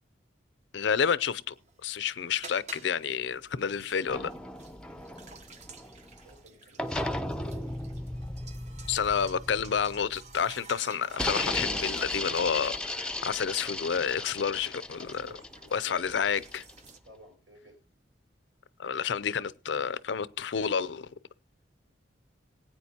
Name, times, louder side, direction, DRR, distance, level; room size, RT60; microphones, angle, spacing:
voice 1, 0.7-1.5 1.8-4.3 8.9-15.1 15.7-16.4 18.8-21.1, left 7 dB, 70° left, 0.5 m, -29 dB
sound 1, 1.5-17.0, right 5 dB, 40° right, 0.9 m, -53 dB
sound 2, 4.1-6.4 6.8-10.4 11.1-16.9, left 1 dB, 5° left, 0.6 m, -36 dB
voice 2, 6.1-7.7 15.0-16.3 17.0-17.8, right 1 dB, 80° right, 5.8 m, -54 dB
20.0 x 9.1 x 2.8 m
head